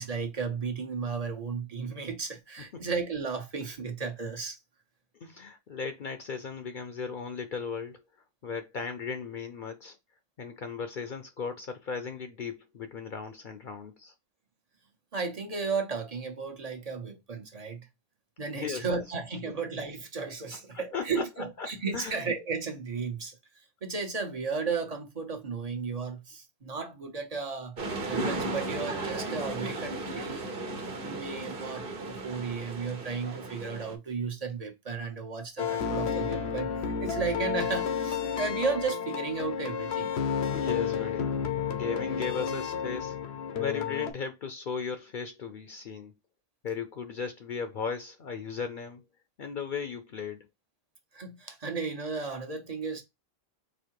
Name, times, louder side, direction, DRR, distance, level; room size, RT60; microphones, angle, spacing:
voice 1, 0.0-4.6 15.1-17.9 18.4-23.4 23.8-27.8 28.1-30.4 31.0-40.1 51.1-53.0, right 5 dB, 40° right, 0.9 m, -34 dB
voice 2, 5.2-8.0 8.4-10.0 10.4-14.1 18.5-19.0 20.5-21.7 21.9-22.2 40.5-41.3 41.7-43.2 43.6-46.1 46.6-49.0 49.4-50.5, left 5 dB, 55° left, 0.7 m, -36 dB
sound 1, 27.8-33.9, right 2 dB, 60° right, 1.2 m, -35 dB
sound 2, 35.6-44.1, left 7 dB, 85° left, 1.0 m, -31 dB
4.2 x 2.7 x 4.6 m
omnidirectional pair, 1.1 m